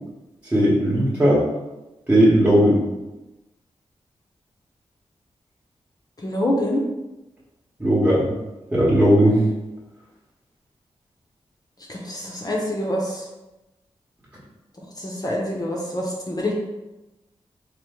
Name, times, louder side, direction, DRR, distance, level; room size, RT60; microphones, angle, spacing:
voice 1, 0.5-1.4 2.1-2.8 7.8-8.3 8.7-9.4, equal, 10° right, -8 dB, 0.9 m, -17 dB
voice 2, 6.2-6.8 11.9-13.2 15.0-16.5, left 1 dB, 35° left, -2 dB, 0.6 m, -26 dB
3.0 x 2.1 x 3.5 m, 1.0 s
cardioid pair, 50°, 12 cm